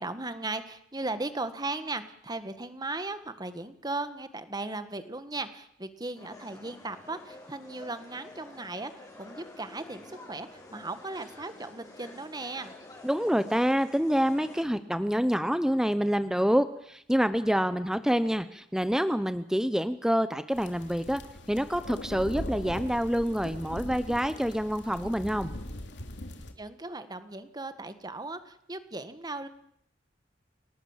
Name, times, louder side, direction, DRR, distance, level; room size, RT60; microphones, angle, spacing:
voice 1, 0.0-8.9 9.2-12.7 26.6-29.5, right 2 dB, 20° right, 11 dB, 1.8 m, -37 dB
sound 1, 6.1-14.6, left 2 dB, 20° left, 5.3 m, -49 dB
voice 2, 13.0-21.2 21.5-25.5, equal, 5° right, 11 dB, 0.9 m, -27 dB
sound 2, 20.5-26.5, left 1 dB, 70° left, 2.9 m, -40 dB
28.5 x 18.5 x 7.4 m, 0.70 s
head